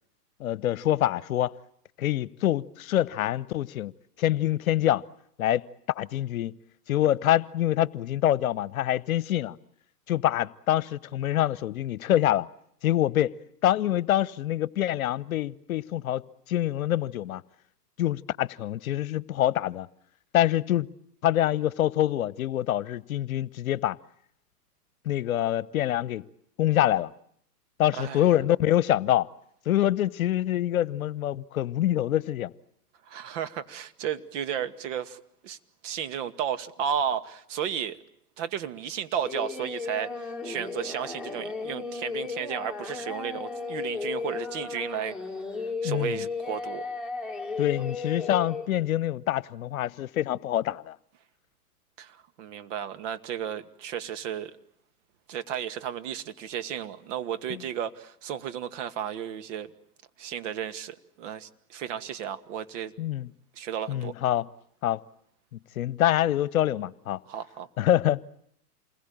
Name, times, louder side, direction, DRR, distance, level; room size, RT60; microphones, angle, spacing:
voice 1, 0.4-1.5 2.0-3.9 4.2-5.0 5.4-5.6 6.0-6.5 6.9-9.6 10.1-12.5 12.8-13.3 13.6-17.4 18.0-19.9 20.3-20.9 21.2-24.0 25.0-26.2 26.6-27.1 27.8-29.3 29.7-32.5 45.8-46.3 47.6-51.0 57.5-57.6 63.0-63.3 63.9-64.5 64.8-65.0 65.5-67.2 67.8-68.2, left 12 dB, 60° left, 1.1 m, -25 dB
voice 2, 33.1-35.6 35.8-38.0 38.4-45.2 45.8-46.9 52.0-54.5 55.3-59.7 60.2-62.9 63.6-64.1 67.3-67.7, right 9 dB, 50° right, 2.2 m, -33 dB
Singing, 39.2-48.7, left 4 dB, ahead, 3.5 m, -34 dB
28.5 x 21.5 x 8.7 m
hypercardioid pair, 115°, 47 cm